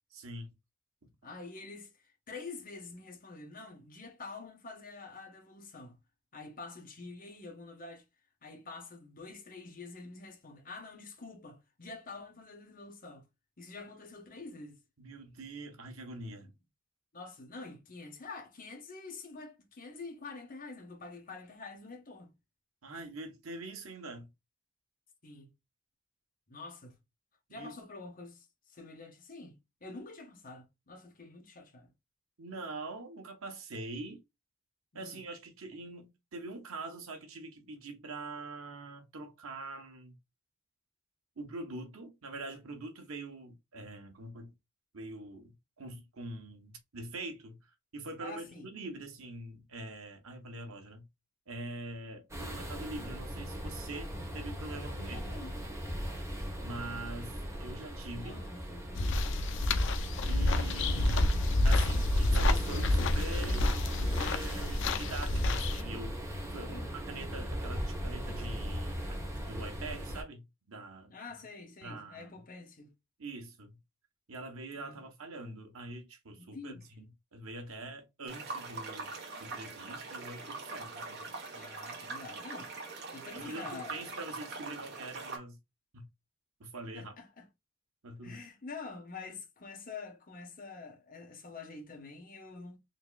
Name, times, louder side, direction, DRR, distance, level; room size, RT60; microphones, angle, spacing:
voice 1, 0.1-0.5 1.0-1.1 15.0-16.5 22.8-24.3 27.5-27.7 32.4-34.2 34.9-40.2 41.4-44.5 44.9-51.1 51.5-55.3 56.6-58.4 60.2-61.3 61.6-66.2 66.5-69.2 69.5-71.1 71.8-72.3 73.2-73.8 74.3-79.1 79.4-81.3 83.3-85.6 85.9-86.1 86.6-87.1 88.0-88.4, right 2 dB, 90° right, 1.2 m, -44 dB
voice 2, 1.2-6.0 6.3-8.0 8.4-13.3 13.6-14.8 16.4-16.5 17.1-22.3 25.2-25.5 26.5-27.0 27.5-31.9 34.9-35.2 48.2-48.7 54.8-55.6 58.2-59.4 66.6-66.9 71.1-72.9 74.7-75.1 76.4-76.8 81.5-82.7 83.1-84.1 86.9-87.5 88.2-92.8, left 3 dB, 40° left, 1.2 m, -47 dB
sound 1, 52.3-70.2, equal, 15° right, 1.1 m, -38 dB
sound 2, 59.0-65.8, left 2 dB, 60° left, 0.5 m, -29 dB
sound 3, 78.3-85.4, right 3 dB, 55° right, 1.2 m, -42 dB
4.0 x 2.9 x 2.3 m
head